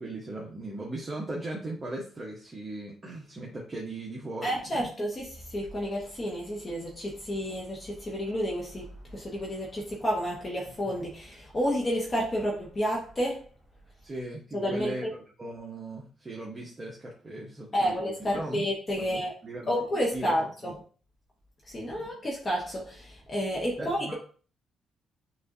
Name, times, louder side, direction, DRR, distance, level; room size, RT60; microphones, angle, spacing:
voice 1, 0.0-4.9 14.0-15.1 15.4-18.6 19.0-19.8 20.1-20.7 21.9-22.1 23.8-24.1, right 2 dB, 30° right, 1.0 m, -38 dB
voice 2, 4.4-8.8 9.1-13.4 14.6-15.1 17.7-19.3 19.7-20.8 21.7-24.1, equal, 30° left, 1.1 m, -30 dB
6.1 x 2.7 x 2.6 m
cardioid pair, 90°, 0 cm